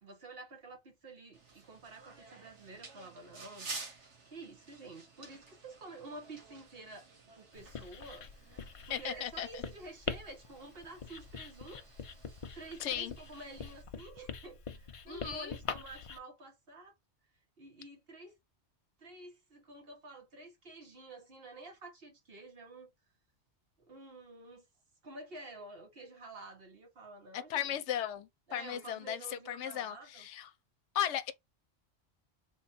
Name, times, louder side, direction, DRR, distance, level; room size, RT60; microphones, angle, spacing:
voice 1, 0.0-3.7 3.9-7.1 7.4-11.8 12.5-16.9 17.6-18.4 19.0-22.9 23.8-24.6 25.0-27.8 28.5-30.3, right 2 dB, 55° right, 1.4 m, -50 dB
sound 1, 1.3-13.8, right 3 dB, 85° right, 1.4 m, -52 dB
Writing, 7.5-16.2, left 6 dB, 50° left, 0.4 m, -44 dB
voice 2, 8.9-9.5 12.8-13.1 15.1-15.5 27.3-30.5 30.9-31.3, left 10 dB, 90° left, 0.9 m, -36 dB
3.6 x 2.3 x 4.0 m
omnidirectional pair, 1.2 m